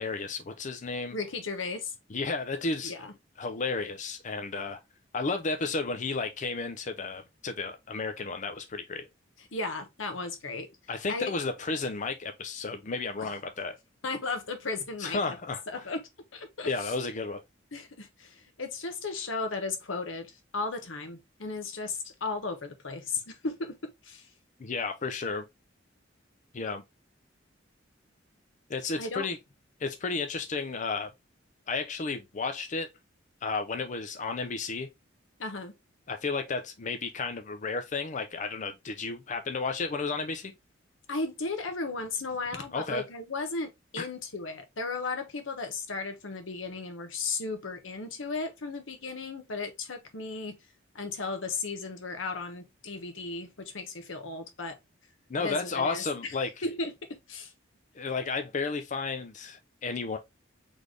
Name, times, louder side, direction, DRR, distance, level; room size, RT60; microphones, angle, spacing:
voice 1, 0.0-1.2 2.1-2.9 3.4-4.8 5.1-9.1 10.9-13.8 15.0-15.6 16.7-17.4 24.6-25.4 26.5-26.8 28.7-29.4 29.8-31.1 31.7-32.9 33.4-34.9 36.1-40.5 42.7-43.1 55.3-56.5 58.0-60.2, left 4 dB, 40° left, 0.5 m, -32 dB
voice 2, 1.1-1.9 2.8-3.1 9.5-10.7 11.1-11.3 13.2-13.4 14.0-15.4 15.7-16.0 16.3-16.9 17.7-24.2 29.0-29.3 35.4-35.7 41.1-50.6 50.9-54.8 55.4-56.3 56.6-57.5, left 3 dB, 85° left, 1.1 m, -35 dB
4.1 x 3.4 x 3.2 m
head